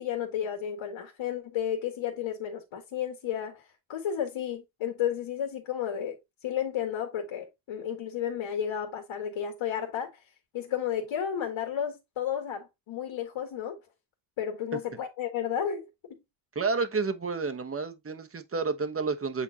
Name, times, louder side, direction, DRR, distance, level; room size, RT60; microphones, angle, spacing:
voice 1, 0.0-6.2 6.4-10.1 10.5-13.8 14.4-15.9 16.1-16.2, left 9 dB, 75° left, 1.9 m, -32 dB
voice 2, 16.5-19.4, right 4 dB, 30° right, 1.2 m, -30 dB
8.6 x 4.4 x 2.9 m
cardioid pair, 115°, 46 cm